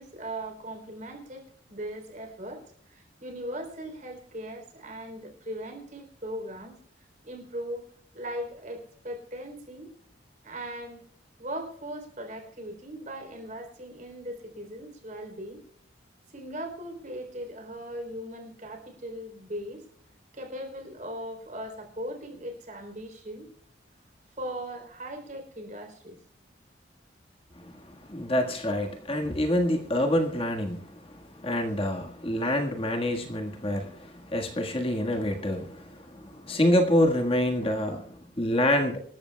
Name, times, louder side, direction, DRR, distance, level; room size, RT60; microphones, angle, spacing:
voice 1, 0.0-6.8 7.2-9.9 10.4-11.0 11.4-15.6 16.3-19.8 20.3-23.5 24.4-26.2, right 1 dB, 40° right, 4 dB, 3.7 m, -39 dB
voice 2, 27.5-39.0, left 1 dB, 30° left, 2 dB, 1.6 m, -27 dB
26.0 x 13.5 x 2.3 m, 0.63 s
head